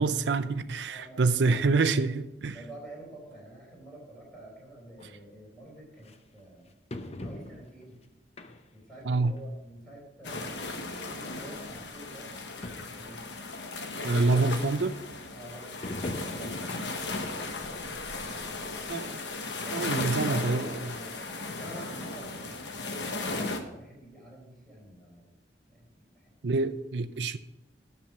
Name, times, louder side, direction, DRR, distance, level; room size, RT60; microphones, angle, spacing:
voice 1, 0.0-2.6 9.1-9.3 14.0-15.0 18.9-19.2 19.7-20.9 26.4-27.4, right 3 dB, 75° right, 0.5 m, -26 dB
voice 2, 0.9-1.6 1.9-2.0 2.5-6.7 7.2-8.0 8.7-12.3 12.7-13.2 15.3-18.9 19.6-21.2 21.5-25.3 25.7-26.3, right 1 dB, 5° left, 4.3 m, -48 dB
sound 1, 5.0-5.1 6.1-6.2 6.9-7.8 8.4-8.9 9.3-9.4 10.4-10.5 10.6-10.7 11.6-11.7 12.0-12.1 12.3-12.4 12.6-13.1 13.6-13.7 15.8-17.1 17.5-17.7 18.2-18.3, left 1 dB, 35° left, 0.7 m, -40 dB
sound 2, 10.2-23.6, left 3 dB, 80° left, 1.1 m, -36 dB
10.5 x 6.8 x 5.9 m
head